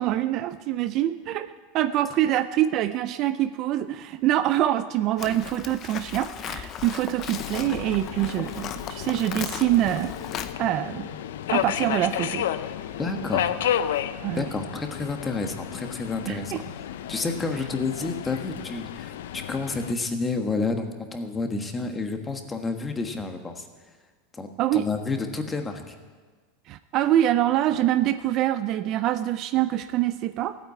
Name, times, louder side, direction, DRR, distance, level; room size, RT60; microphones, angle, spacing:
voice 1, 0.0-10.1 10.6-11.1 11.5-12.5 14.2-14.4 16.3-16.6 24.6-24.9 26.7-30.6, right 13 dB, 40° right, 12 dB, 0.5 m, -25 dB
Livestock farm animals working animals, 5.2-10.5, left 9 dB, 35° left, 0.7 m, -36 dB
Subway metro underground, 7.3-19.9, left 10 dB, 85° left, 0.6 m, -32 dB
voice 2, 13.0-13.6 14.3-16.6 17.1-23.7 24.3-25.9, left 3 dB, 15° left, 5 dB, 1.3 m, -30 dB
15.0 x 9.3 x 8.4 m, 1.4 s
supercardioid pair, 150°, 0 cm